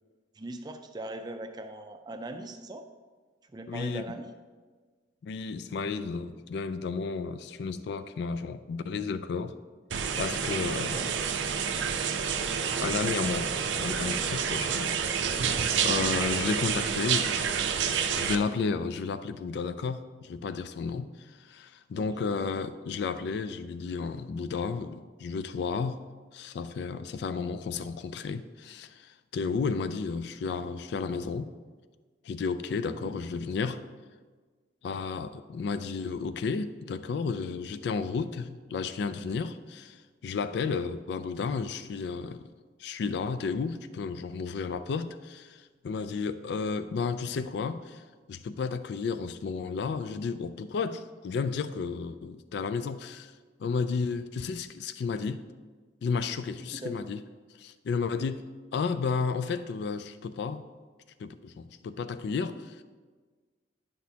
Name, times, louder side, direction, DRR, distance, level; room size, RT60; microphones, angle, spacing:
voice 1, 0.4-2.9 3.4-4.3 10.7-11.1 22.0-22.4 32.9-33.2 56.6-57.1, right 1 dB, 20° right, 0.4 m, -41 dB
voice 2, 3.7-4.0 5.2-9.5 10.2-11.0 12.8-13.5 13.8-15.0 15.8-17.5 18.1-21.1 21.4-26.0 26.3-31.5 32.3-33.8 34.8-40.0 40.2-42.4 42.8-45.6 45.8-48.0 48.3-53.3 53.6-55.4 56.0-57.2 57.6-58.4 58.7-60.6 61.2-62.8, left 5 dB, 65° left, 0.3 m, -32 dB
sound 1, 9.9-18.4, right 7 dB, 85° right, 0.5 m, -29 dB
10.5 x 6.2 x 2.8 m
head